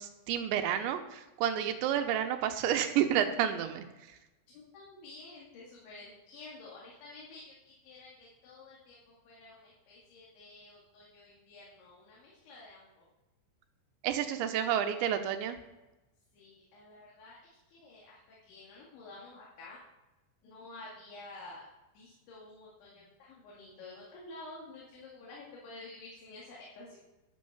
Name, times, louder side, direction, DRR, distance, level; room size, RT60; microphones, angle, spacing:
voice 1, 0.0-3.9 14.0-15.6, right 10 dB, 90° right, 7 dB, 3.2 m, -30 dB
voice 2, 4.5-13.1 16.3-19.8 20.4-21.7 21.9-27.0, left 2 dB, 90° left, -5 dB, 4.6 m, -51 dB
12.0 x 6.4 x 7.2 m, 1.0 s
omnidirectional pair, 5.1 m